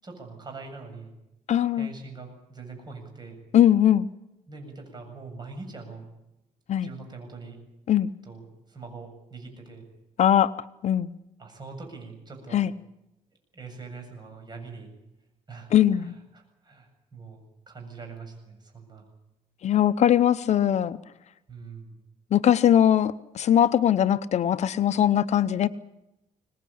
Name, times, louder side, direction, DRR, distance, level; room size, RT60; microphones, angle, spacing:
voice 1, 0.0-1.1 1.7-3.4 4.5-6.1 6.8-7.6 8.3-9.9 11.4-12.6 13.5-14.9 15.5-15.7 16.0-19.1 21.5-21.9, right 4 dB, 30° right, 4 dB, 7.6 m, -43 dB
voice 2, 1.5-1.9 3.5-4.1 6.7-6.9 7.9-8.1 10.2-10.5 10.8-11.1 12.5-12.7 15.7-16.2 19.6-21.0 22.3-25.7, left 10 dB, 55° left, 13 dB, 0.8 m, -21 dB
23.5 x 19.5 x 8.6 m, 0.91 s
cardioid pair, 115°, 13 cm